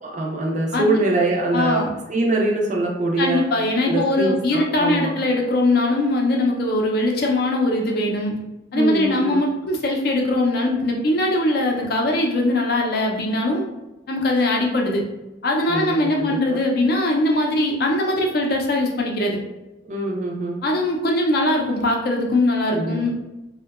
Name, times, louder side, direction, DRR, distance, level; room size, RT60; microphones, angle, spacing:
voice 1, 0.0-1.8 2.1-3.4 3.8-5.1 8.7-9.4 15.7-16.6 19.8-20.6 22.7-23.0, right 2 dB, 40° right, 0 dB, 0.4 m, -23 dB
voice 2, 0.7-1.0 1.5-1.9 3.2-8.3 8.7-13.6 14.1-15.0 15.4-19.4 20.6-23.2, left 1 dB, 50° left, 0 dB, 0.4 m, -21 dB
2.6 x 2.1 x 2.3 m, 0.99 s
head